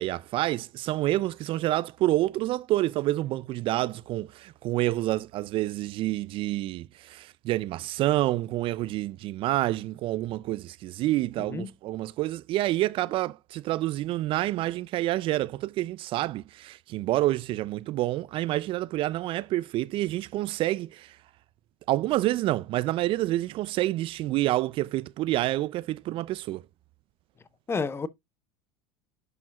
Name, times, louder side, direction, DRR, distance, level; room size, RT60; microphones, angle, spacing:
voice 1, 0.0-21.2 21.9-26.6, right 16 dB, 45° right, 0.4 m, -28 dB
voice 2, 11.4-11.7 27.7-28.1, left 4 dB, 20° left, 0.7 m, -30 dB
10.5 x 5.0 x 2.3 m
supercardioid pair, 105°, 12 cm